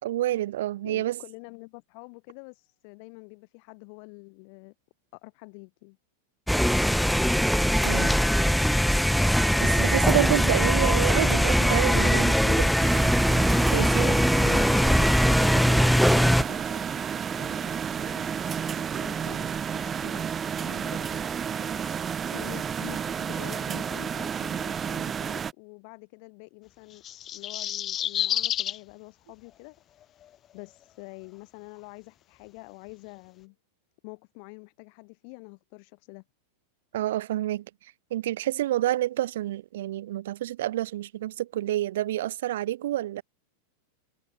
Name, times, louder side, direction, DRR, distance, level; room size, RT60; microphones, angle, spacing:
voice 1, 0.0-1.2 7.8-8.2 9.6-13.1 13.7-14.2 36.9-37.7 38.1-43.2, right 14 dB, 55° right, 2.4 m, -28 dB
voice 2, 0.8-4.7 5.1-6.0 10.7-10.9 14.4-20.3 20.5-27.0 27.3-30.2 30.5-33.6 34.0-36.2, left 40 dB or more, 45° left, 4.4 m, -46 dB
sound 1, 6.5-16.4, equal, ahead, 0.8 m, -21 dB
sound 2, 12.8-25.5, right 7 dB, 20° right, 3.2 m, -31 dB
sound 3, 26.9-28.8 30.2-30.3, left 11 dB, 30° left, 1.7 m, -29 dB
figure-of-eight pair, 90°, 0 cm